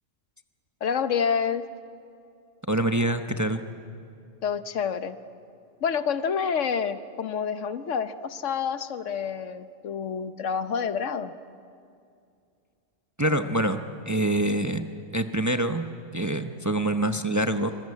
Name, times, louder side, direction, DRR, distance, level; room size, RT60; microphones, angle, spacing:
voice 1, 0.8-1.7 4.4-5.2 5.8-11.3, left 6 dB, 75° left, 12 dB, 1.2 m, -28 dB
voice 2, 2.7-3.6 13.2-14.8 15.1-15.8 16.1-17.7, right 1 dB, 15° right, 7 dB, 0.7 m, -25 dB
25.5 x 22.0 x 8.5 m, 2.5 s
omnidirectional pair, 1.3 m